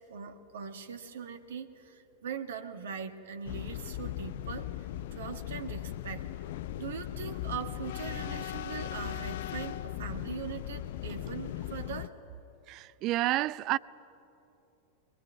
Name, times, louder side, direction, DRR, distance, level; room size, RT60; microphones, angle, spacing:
voice 1, 0.0-6.3 6.8-12.2, right 7 dB, 60° right, 1.5 m, -41 dB
sound 1, 3.4-12.1, left 13 dB, 55° left, 0.6 m, -38 dB
voice 2, 12.7-13.8, right 16 dB, 40° right, 0.5 m, -29 dB
23.5 x 22.5 x 9.4 m
figure-of-eight pair, 90°, 0 cm